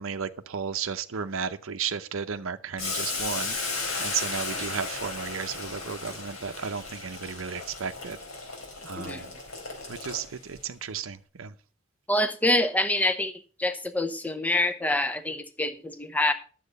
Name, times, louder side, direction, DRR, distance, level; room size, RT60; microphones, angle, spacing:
voice 1, 0.0-3.6 4.0-8.2 8.8-9.3 9.9-11.5, right 6 dB, 70° right, 9 dB, 0.7 m, -34 dB
Boiling, 2.8-10.6, left 3 dB, 80° left, 4.0 m, -35 dB
voice 2, 12.1-13.3 13.6-16.3, left 1 dB, 5° left, 9 dB, 0.7 m, -26 dB
10.5 x 7.7 x 5.3 m, 0.40 s
head